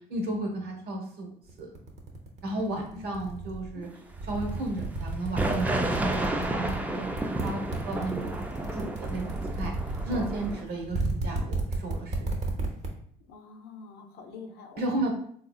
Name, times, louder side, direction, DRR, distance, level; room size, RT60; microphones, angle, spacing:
voice 1, 0.1-1.3 1.6-1.7 2.4-3.9 4.3-8.4 8.7-9.7 10.0-12.3 14.8-15.1, right 2 dB, 70° right, 1 dB, 1.0 m, -34 dB
sound 1, 1.5-3.7 4.1-6.8 7.1-12.9, right 3 dB, 40° right, 0.8 m, -32 dB
voice 2, 3.7-4.1 13.3-14.8, left 4 dB, 70° left, 4 dB, 0.6 m, -46 dB
sound 2, 5.4-10.6, right 1 dB, 10° right, 0.3 m, -31 dB
3.8 x 2.8 x 2.3 m, 0.62 s
cardioid pair, 110°, 17 cm